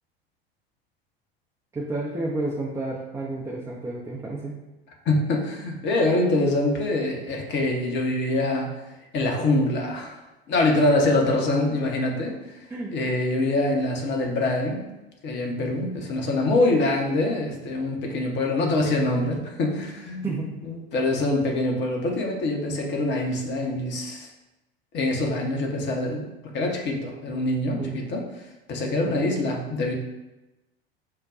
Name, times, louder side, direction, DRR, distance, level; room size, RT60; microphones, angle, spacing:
voice 1, 1.7-4.5 12.7-12.9 20.2-20.5 27.8-28.0 29.0-29.2, right 2 dB, 10° right, -4 dB, 0.6 m, -31 dB
voice 2, 5.1-8.7 9.1-10.2 10.5-12.4 12.9-14.8 15.2-20.3 20.6-24.3 24.9-26.3 26.5-28.2 28.7-29.9, left 2 dB, 35° left, 1 dB, 0.9 m, -24 dB
6.5 x 2.2 x 2.4 m, 1.0 s
figure-of-eight pair, 75°, 31 cm